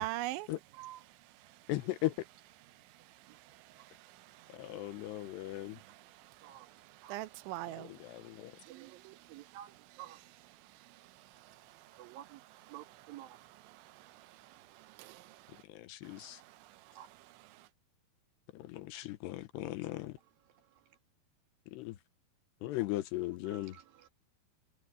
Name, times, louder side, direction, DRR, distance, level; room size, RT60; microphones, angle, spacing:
voice 1, 0.0-0.5 1.0-1.7 2.7-9.6 10.1-15.6 16.0-17.7, right 16 dB, 90° right, 3.2 m, -48 dB
voice 2, 1.7-2.1 4.5-5.8 7.8-8.5 15.7-16.4 18.5-20.2 21.7-22.0 22.6-23.7, left 16 dB, 80° left, 2.9 m, -38 dB
voice 3, 8.7-10.2 12.0-12.4 12.7-13.4 17.0-17.1 23.5-24.1, right 13 dB, 60° right, 2.9 m, -51 dB
omnidirectional pair, 5.2 m